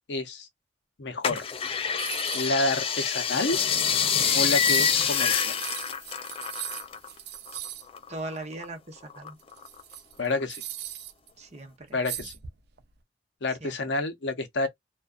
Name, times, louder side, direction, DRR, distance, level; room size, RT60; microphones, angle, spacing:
voice 1, 0.1-0.5 1.0-1.4 2.3-3.6 4.3-5.6 10.2-10.6 11.9-12.3 13.4-14.7, left 2 dB, 70° left, 0.6 m, -29 dB
sound 1, 1.2-7.1 7.4-8.7 9.1-9.9 10.4-10.5, left 7 dB, 30° left, 0.4 m, -27 dB
sound 2, 2.0-2.7 3.0-3.1 3.9-4.0 4.1-7.9 9.4-11.3 12.0-12.8, right 12 dB, 60° right, 0.5 m, -39 dB
voice 2, 8.1-9.4 11.4-12.0 13.6-13.7, right 2 dB, 40° right, 0.8 m, -39 dB
2.4 x 2.2 x 2.3 m
head